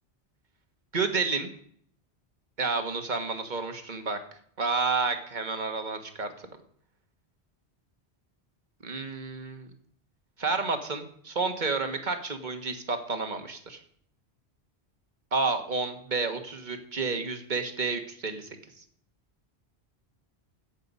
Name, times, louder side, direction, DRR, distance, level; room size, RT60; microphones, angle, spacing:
voice 1, 0.9-1.5 2.6-4.2 4.6-6.3 8.8-9.7 10.4-13.8 15.3-18.5, right 4 dB, 45° right, 6 dB, 1.6 m, -30 dB
14.5 x 8.9 x 5.4 m, 0.62 s
omnidirectional pair, 1.1 m